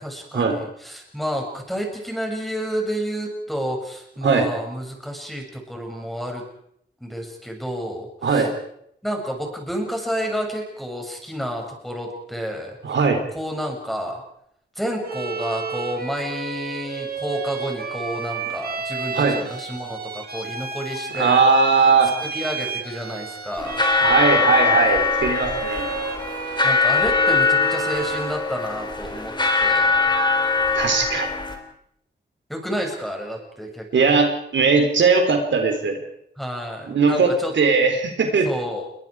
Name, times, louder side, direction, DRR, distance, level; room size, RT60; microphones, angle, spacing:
voice 1, 0.0-6.5 7.0-8.5 9.0-13.0 13.3-14.2 14.7-21.4 21.8-21.9 22.2-23.8 26.6-29.3 29.6-30.1 32.5-34.2 36.4-37.5 38.4-38.9, equal, ahead, 2 dB, 6.7 m, -30 dB
voice 2, 12.8-13.2 19.1-19.4 21.1-22.2 24.0-25.9 30.7-31.3 33.9-36.0 36.9-38.5, right 4 dB, 90° right, 5 dB, 3.7 m, -19 dB
Bowed string instrument, 15.0-28.4, right 5 dB, 60° right, 3.8 m, -31 dB
sound 1, 23.6-31.6, left 4 dB, 25° left, 4.0 m, -21 dB
29.0 x 22.5 x 4.9 m, 0.71 s
wide cardioid pair, 110°, 19 cm